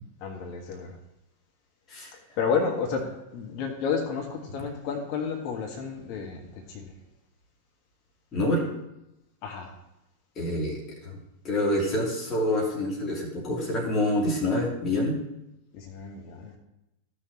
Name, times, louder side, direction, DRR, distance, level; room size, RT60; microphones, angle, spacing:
voice 1, 0.2-0.9 2.1-6.9 9.4-9.7 15.7-16.6, left 5 dB, 45° left, 1 dB, 1.6 m, -31 dB
voice 2, 8.3-8.7 10.4-11.2 11.4-15.2, left 1 dB, 25° left, -4 dB, 2.9 m, -27 dB
14.5 x 6.5 x 3.0 m, 0.89 s
figure-of-eight pair, 90°, 0 cm